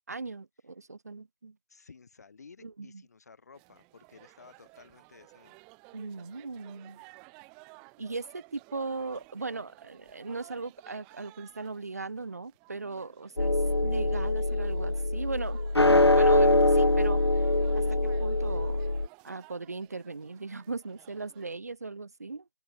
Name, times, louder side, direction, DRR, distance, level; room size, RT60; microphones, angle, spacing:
voice 1, 0.1-1.6 2.6-3.0 5.9-7.0 8.0-13.6 13.8-15.6 16.1-17.5 17.7-18.9 19.2-22.5, right 3 dB, 25° right, 1.6 m, -38 dB
voice 2, 1.7-5.6, left 5 dB, 25° left, 6.1 m, -54 dB
sound 1, 3.5-21.6, right 34 dB, 5° right, 1.5 m, -56 dB
sound 2, 13.4-19.1, left 2 dB, 40° left, 0.4 m, -24 dB
open air
figure-of-eight pair, 175°, 21 cm